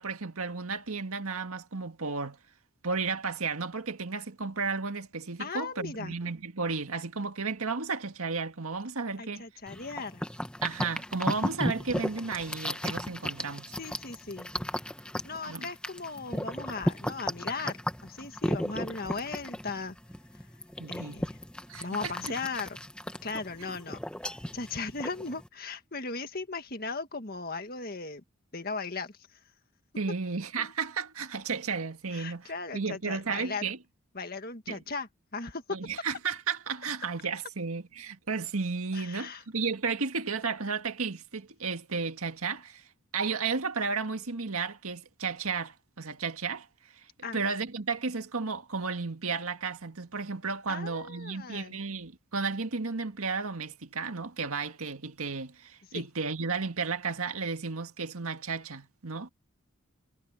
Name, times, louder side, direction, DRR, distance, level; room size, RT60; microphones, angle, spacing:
voice 1, 0.0-2.4 2.8-9.4 10.6-13.8 15.5-15.7 20.8-21.2 21.7-22.1 30.0-33.8 34.7-34.8 35.7-42.8 43.1-46.7 47.3-59.3, right 4 dB, 85° right, 1.8 m, -33 dB
voice 2, 5.4-6.1 9.2-10.2 13.8-14.5 15.2-20.0 20.9-21.4 21.8-22.8 23.2-24.0 24.5-28.2 28.5-29.4 30.6-30.7 32.1-33.7 34.1-35.6 38.9-39.4 47.2-47.4 50.7-51.8 55.9-56.1, left 4 dB, 45° left, 1.9 m, -37 dB
sound 1, 9.7-25.5, equal, 5° left, 1.0 m, -35 dB
head